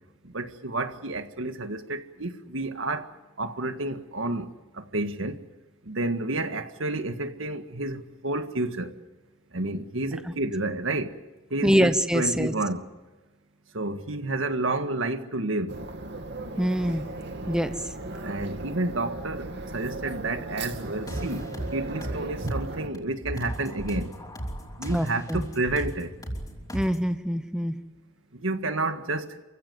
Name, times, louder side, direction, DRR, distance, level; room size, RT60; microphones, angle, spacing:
voice 1, 0.2-3.1 3.4-5.4 5.8-8.9 9.5-11.2 11.5-12.9 13.7-15.8 18.2-21.5 21.7-24.1 24.8-26.1 28.3-29.4, right 2 dB, 80° right, 1.7 m, -30 dB
voice 2, 11.6-12.5 16.6-17.0 17.5-17.7 24.9-25.5 26.7-27.8, equal, 5° right, 1.0 m, -24 dB
sound 1, 15.7-22.9, right 2 dB, 60° right, 2.3 m, -36 dB
sound 2, 20.7-27.0, right 1 dB, 20° left, 5.2 m, -36 dB
28.5 x 16.0 x 9.4 m
head